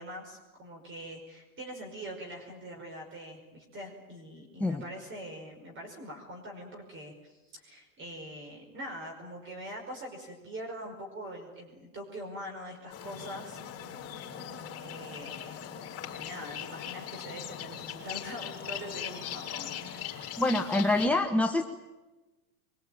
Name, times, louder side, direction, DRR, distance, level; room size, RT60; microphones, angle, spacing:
voice 1, 0.0-13.6 14.1-14.4 14.8-15.7 16.2-19.8 20.2-20.3, equal, 25° right, 2 dB, 5.3 m, -43 dB
sound 1, 12.9-21.1, left 9 dB, 35° left, 4.9 m, -40 dB
voice 2, 20.4-21.6, left 2 dB, 5° left, 4 dB, 1.1 m, -26 dB
24.0 x 23.5 x 9.1 m, 1.1 s
hypercardioid pair, 120°, 43 cm